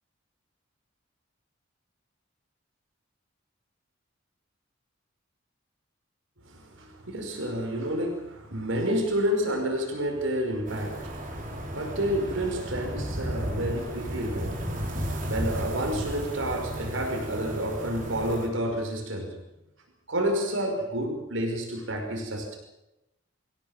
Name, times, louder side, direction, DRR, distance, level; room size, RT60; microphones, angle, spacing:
voice 1, 6.4-11.5 11.7-19.4 20.1-22.6, equal, 75° right, 3 dB, 5.4 m, -30 dB
sound 1, 10.7-18.5, equal, 45° right, 5.8 m, -34 dB
26.0 x 17.0 x 7.2 m, 0.92 s
head